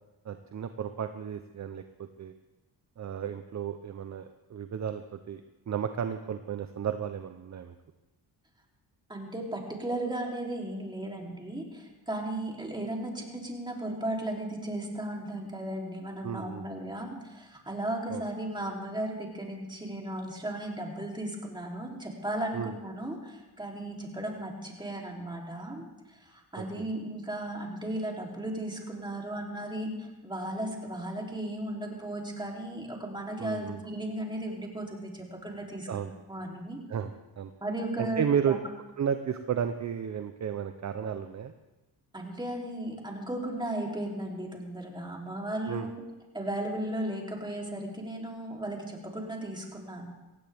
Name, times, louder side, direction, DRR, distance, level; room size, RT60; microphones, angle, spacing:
voice 1, 0.2-2.3 3.0-5.4 5.7-7.7 16.2-16.7 18.1-18.2 22.5-22.7 26.6-26.8 33.4-33.8 35.9-36.1 36.9-37.5 38.0-38.6 39.0-41.5 45.7-45.9, right 8 dB, 40° right, 9 dB, 0.8 m, -33 dB
voice 2, 9.1-25.9 26.5-36.8 37.6-38.6 42.1-45.9 46.3-50.1, right 1 dB, 10° right, -1 dB, 3.3 m, -35 dB
18.0 x 15.5 x 3.5 m, 1.1 s
cardioid pair, 95°, 42 cm